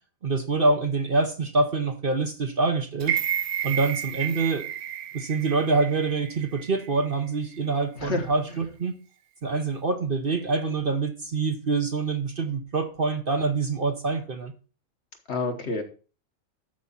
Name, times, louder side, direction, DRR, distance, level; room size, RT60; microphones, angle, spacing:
voice 1, 0.2-3.2 3.6-4.7 5.1-8.9 9.4-14.5, right 3 dB, 45° right, 1.0 m, -25 dB
sound 1, 3.0-7.1 7.5-7.6, right 10 dB, 75° right, 1.0 m, -31 dB
voice 2, 8.0-8.6 15.3-15.8, left 3 dB, 50° left, 1.4 m, -29 dB
13.0 x 4.9 x 4.1 m
omnidirectional pair, 1.5 m